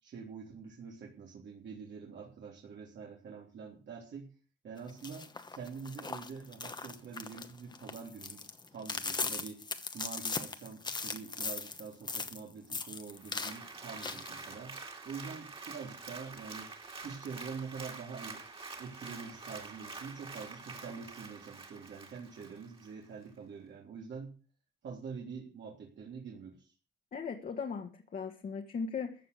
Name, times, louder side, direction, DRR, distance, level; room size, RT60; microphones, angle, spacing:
voice 1, 0.0-4.3 4.6-5.3 5.5-9.6 9.9-14.7 15.0-16.7 17.0-24.3 24.8-26.7, right 5 dB, 85° right, -2 dB, 3.5 m, -45 dB
sound 1, 4.9-12.4 12.7-13.6 14.0-14.5, left 4 dB, 25° left, 1.0 m, -39 dB
Applause, 13.2-22.9 23.4-23.5, right 3 dB, 30° right, 2.4 m, -47 dB
voice 2, 27.1-29.1, left 5 dB, 55° left, 2 dB, 1.7 m, -38 dB
14.5 x 6.9 x 8.2 m, 0.39 s
wide cardioid pair, 175°, 18 cm